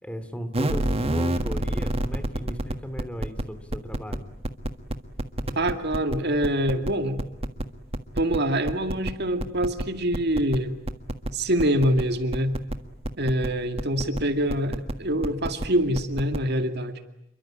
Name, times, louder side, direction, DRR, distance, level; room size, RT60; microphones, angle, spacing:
voice 1, 0.0-4.2, equal, 5° left, 10 dB, 2.7 m, -36 dB
sound 1, 0.5-3.4 3.7-4.2 4.4-6.2 6.4-6.9 7.2-7.6 7.9-8.4 8.7-9.1 9.4-9.8 10.1-10.6 10.8-11.3 11.6-12.0 12.3-12.7 13.0-13.5 13.8-14.2 14.5-14.9 15.2-15.7 15.9-16.4, right 1 dB, 30° right, 1.6 m, -27 dB
voice 2, 5.6-7.2 8.2-10.7 11.3-12.5 13.2-17.0, right 1 dB, 55° right, 7 dB, 2.3 m, -25 dB
28.5 x 23.5 x 8.9 m, 0.80 s
head